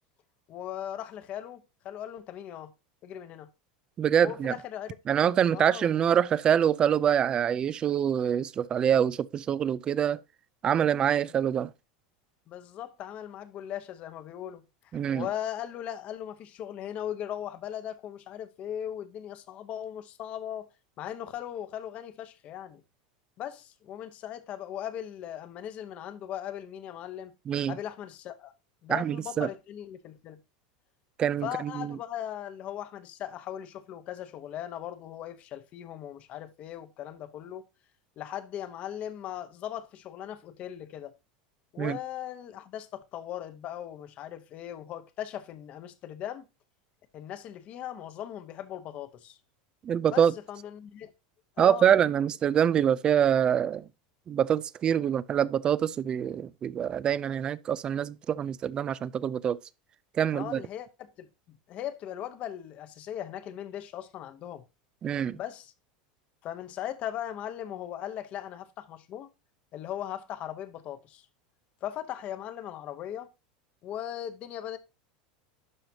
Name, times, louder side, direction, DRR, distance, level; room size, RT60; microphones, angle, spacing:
voice 1, 0.5-2.7 3.0-3.5 4.2-4.9 5.5-5.9 12.5-14.6 14.9-20.7 21.0-22.8 23.4-27.3 27.7-28.5 28.8-30.4 31.4-37.7 38.2-41.1 41.7-46.4 47.1-49.4 50.1-51.1 51.6-51.9 60.3-64.6 65.3-65.7 66.4-69.3 69.7-71.3 71.8-73.3 73.8-74.8, left 11 dB, 35° left, 0.9 m, -38 dB
voice 2, 4.0-4.5 5.1-10.2 10.6-11.7 14.9-15.3 27.5-27.8 28.9-29.5 31.2-32.0 41.8-42.0 49.8-50.3 51.6-53.9 54.3-59.6 60.2-60.6 65.0-65.4, right 9 dB, 20° right, 0.4 m, -25 dB
12.0 x 5.0 x 2.8 m
supercardioid pair, 160°, 4 cm